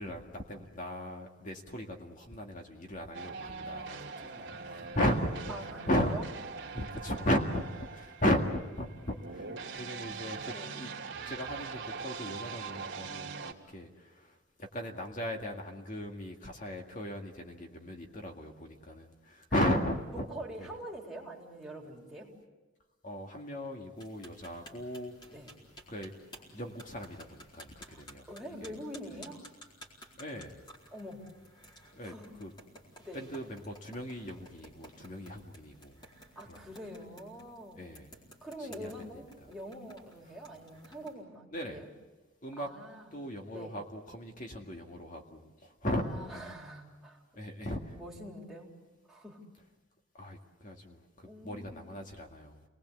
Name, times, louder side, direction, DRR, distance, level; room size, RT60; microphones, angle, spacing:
voice 1, 0.0-5.5 5.9-6.1 6.7-9.5 9.8-10.9 11.3-13.9 14.6-20.3 20.6-20.7 23.0-25.1 25.9-26.1 26.5-28.2 28.6-28.7 30.2-30.6 31.9-32.1 32.4-32.5 33.1-36.0 36.5-36.6 37.8-38.1 38.8-38.9 41.5-41.8 42.4-42.7 43.1-45.4 45.8-46.5 47.4-47.8 50.2-51.0 51.4-52.6, equal, 40° left, 2 dB, 2.0 m, -36 dB
sound 1, 3.1-13.5, right 4 dB, 60° right, 2.7 m, -42 dB
voice 2, 5.5-6.3 10.5-10.8 19.6-19.7 20.1-22.3 25.3-25.5 27.8-28.0 28.3-29.4 30.9-31.2 32.0-32.3 33.0-33.3 36.4-37.8 38.4-41.9 42.6-43.1 43.5-43.7 46.0-47.2 47.9-48.7 49.1-49.4 51.2-51.9, right 1 dB, ahead, -4 dB, 4.0 m, -45 dB
sound 2, 24.0-41.1, equal, 20° left, 4.4 m, -55 dB
28.0 x 20.0 x 8.3 m, 1.2 s
head